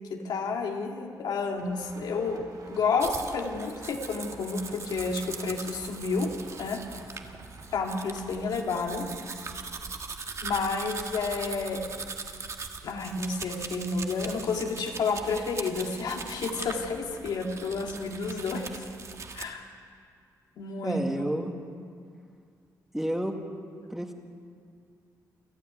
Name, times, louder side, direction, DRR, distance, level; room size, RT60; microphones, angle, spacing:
voice 1, 0.0-6.3 6.6-6.8 7.7-9.4 10.4-11.8 12.8-18.9 19.3-19.7 20.6-21.3, left 4 dB, 80° left, 2 dB, 2.3 m, -30 dB
sound 1, 1.6-7.8, right 3 dB, 60° right, 4.1 m, -51 dB
Domestic sounds home sounds, 3.0-19.5, right 4 dB, 45° right, 1.6 m, -40 dB
voice 2, 20.8-21.5 22.9-23.4 23.9-24.1, equal, 5° right, 3 dB, 2.0 m, -30 dB
28.0 x 9.7 x 9.5 m, 2.2 s
cardioid pair, 95°, 7 cm